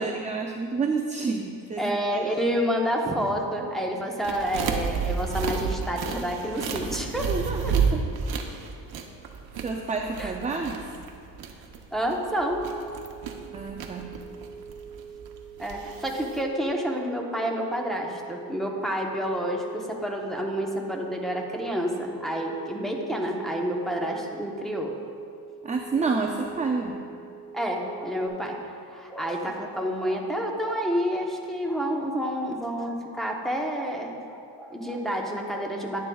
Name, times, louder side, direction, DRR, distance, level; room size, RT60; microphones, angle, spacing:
voice 1, 0.0-2.3 7.3-8.1 9.6-10.9 13.5-14.1 25.6-27.0, right 4 dB, 20° right, 2 dB, 0.3 m, -29 dB
voice 2, 1.8-7.3 7.6-7.7 10.2-10.3 11.9-12.6 15.6-24.9 27.5-28.6 28.9-36.0, equal, ahead, -1 dB, 0.8 m, -29 dB
sound 1, 4.2-16.4, right 6 dB, 60° right, 0.8 m, -31 dB
sound 2, 12.4-28.3, right 6 dB, 20° left, 1.7 m, -44 dB
10.5 x 9.9 x 2.3 m, 2.4 s
cardioid pair, 130°, 42 cm